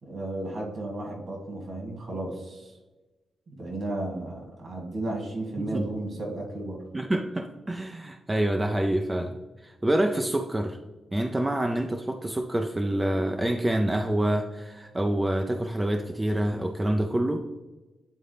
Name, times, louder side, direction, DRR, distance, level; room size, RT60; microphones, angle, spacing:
voice 1, 0.0-2.7 3.5-6.8, right 2 dB, 60° right, -1 dB, 2.1 m, -34 dB
voice 2, 5.6-5.9 6.9-10.8 11.1-17.5, right 1 dB, 20° right, 4 dB, 0.5 m, -27 dB
9.0 x 3.8 x 3.3 m, 1.2 s
cardioid pair, 65°, 0 cm